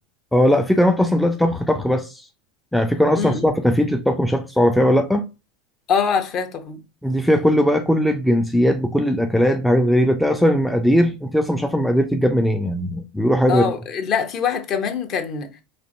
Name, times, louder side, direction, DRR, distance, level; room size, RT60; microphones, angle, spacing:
voice 1, 0.3-2.3 2.7-5.2 7.0-13.6, equal, ahead, 0.4 m, -19 dB
voice 2, 3.2-3.5 5.9-6.8 13.5-15.5, left 6 dB, 40° left, 0.8 m, -23 dB
4.5 x 2.5 x 2.6 m
supercardioid pair, 120°, 0 cm